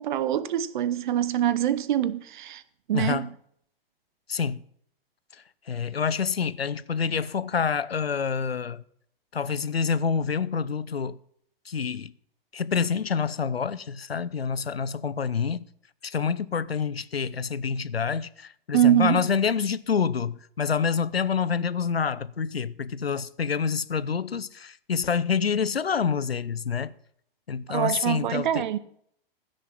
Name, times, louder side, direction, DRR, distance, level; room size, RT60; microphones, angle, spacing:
voice 1, 0.0-2.6 2.9-3.3 18.7-19.2 27.7-28.8, right 11 dB, 55° right, 0.9 m, -24 dB
voice 2, 2.9-3.3 4.3-4.6 5.7-8.8 9.3-11.2 11.7-12.1 12.5-15.7 16.0-26.9 27.5-28.7, left 6 dB, 80° left, 0.6 m, -27 dB
15.0 x 6.6 x 5.8 m
figure-of-eight pair, 100°, 30 cm